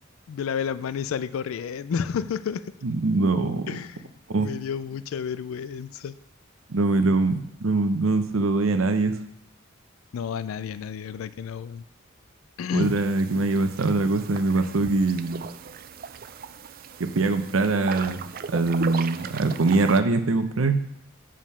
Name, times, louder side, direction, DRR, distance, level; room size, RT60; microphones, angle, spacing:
voice 1, 0.3-2.6 3.7-4.1 4.4-6.1 10.1-11.8 12.6-13.0, left 7 dB, 85° left, 15 dB, 0.4 m, -31 dB
voice 2, 2.8-3.7 4.3-4.5 6.7-9.2 12.7-15.4 17.1-20.9, right 3 dB, 75° right, 9 dB, 0.7 m, -23 dB
sound 1, 12.8-20.0, right 6 dB, 45° right, 0.3 m, -37 dB
7.4 x 5.0 x 5.5 m, 0.77 s
head